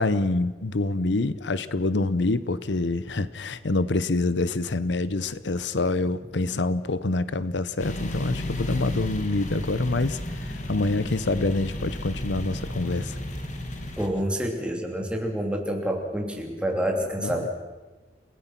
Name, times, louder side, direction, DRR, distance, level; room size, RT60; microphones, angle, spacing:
voice 1, 0.0-13.2 17.2-17.3, left 2 dB, 80° left, 15 dB, 0.8 m, -26 dB
sound 1, 7.8-14.1, left 1 dB, 45° left, 2.4 m, -33 dB
voice 2, 14.0-17.5, equal, 5° right, 2 dB, 2.8 m, -28 dB
29.5 x 18.0 x 6.0 m, 1.2 s
head